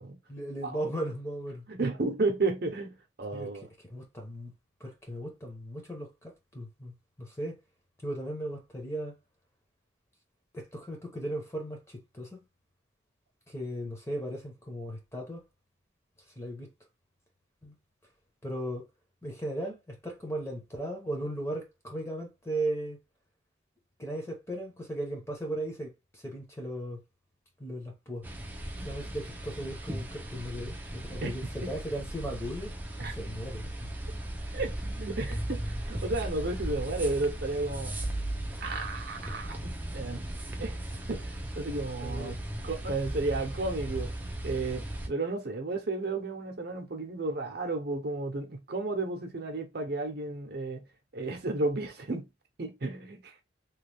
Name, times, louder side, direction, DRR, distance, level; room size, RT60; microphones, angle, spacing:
voice 1, 0.3-1.7 3.3-3.5 3.8-4.5 4.8-7.6 8.0-9.1 10.5-12.4 13.5-15.4 16.4-16.7 17.6-17.7 18.4-18.9 19.2-23.0 24.0-27.0 27.6-28.2 28.8-32.7 33.1-33.9 42.0-42.4, right 1 dB, 15° left, 0.9 m, -37 dB
voice 2, 1.7-3.7 28.8-28.9 31.1-31.4 31.6-31.7 33.0-33.1 34.5-37.9 38.6-40.2 40.6-42.4 42.6-44.1 44.4-50.8 51.1-52.3 52.6-53.3, right 2 dB, 55° right, 0.7 m, -33 dB
sound 1, 28.2-45.1, right 1 dB, 10° right, 0.5 m, -37 dB
3.0 x 2.3 x 3.3 m
head